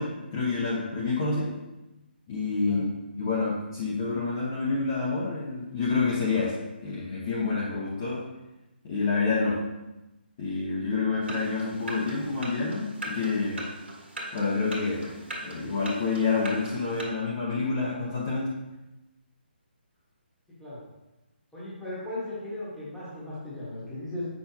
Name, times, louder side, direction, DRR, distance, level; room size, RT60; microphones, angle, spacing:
voice 1, 0.0-1.5 2.3-2.9 3.2-8.3 8.8-9.6 10.4-13.6 14.3-15.1 15.4-18.5, left 4 dB, 20° left, -7 dB, 0.8 m, -28 dB
sound 1, 11.2-17.0, right 2 dB, 70° right, 1.6 m, -40 dB
voice 2, 21.5-24.2, left 1 dB, ahead, -11 dB, 1.3 m, -37 dB
7.5 x 5.9 x 2.8 m, 0.98 s
hypercardioid pair, 175°, 6 cm